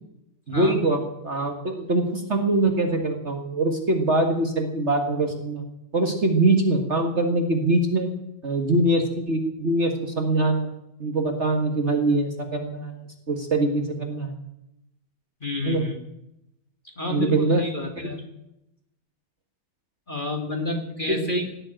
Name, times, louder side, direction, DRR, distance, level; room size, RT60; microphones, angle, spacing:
voice 1, 0.5-5.6 5.9-8.1 8.4-10.7 11.0-14.3 15.6-15.9 17.1-17.6 18.0-18.2 21.1-21.3, right 2 dB, 35° right, 4 dB, 1.8 m, -23 dB
voice 2, 15.4-16.0 17.0-18.2 20.1-21.5, left 2 dB, 25° left, 3 dB, 1.9 m, -29 dB
17.5 x 7.8 x 8.9 m, 0.85 s
omnidirectional pair, 2.2 m